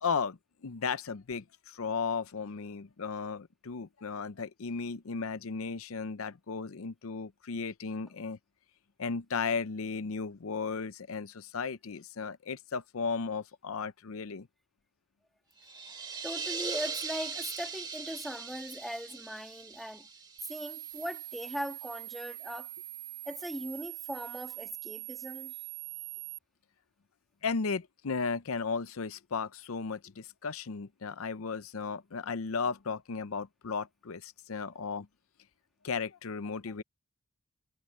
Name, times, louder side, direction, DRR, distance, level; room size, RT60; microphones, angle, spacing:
voice 1, 0.0-8.4 9.0-14.5 27.4-35.1 35.8-36.8, left 5 dB, 75° left, 0.6 m, -35 dB
sound 1, 15.6-21.2, right 5 dB, 20° right, 2.0 m, -40 dB
voice 2, 16.2-20.1 20.5-22.7 23.2-25.5, equal, ahead, 2.5 m, -39 dB
sound 2, 20.4-26.4, right 19 dB, 80° right, 4.2 m, -43 dB
head